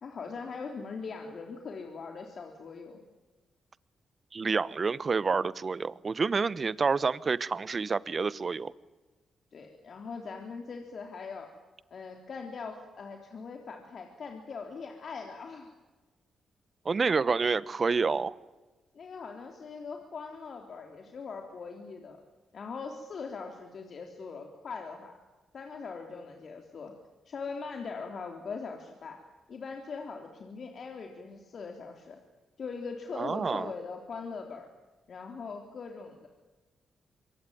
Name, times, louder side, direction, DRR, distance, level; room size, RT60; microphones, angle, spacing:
voice 1, 0.0-3.0 9.5-11.6 11.9-15.7 18.9-22.2 22.5-25.2 25.5-26.9 27.3-29.2 29.5-32.2 32.6-34.7 35.1-36.3, left 5 dB, 60° left, 3.5 m, -41 dB
voice 2, 4.3-8.7 16.8-18.3 33.2-33.7, right 4 dB, 45° right, 1.1 m, -28 dB
25.5 x 23.0 x 9.4 m
supercardioid pair, 45°, 0 cm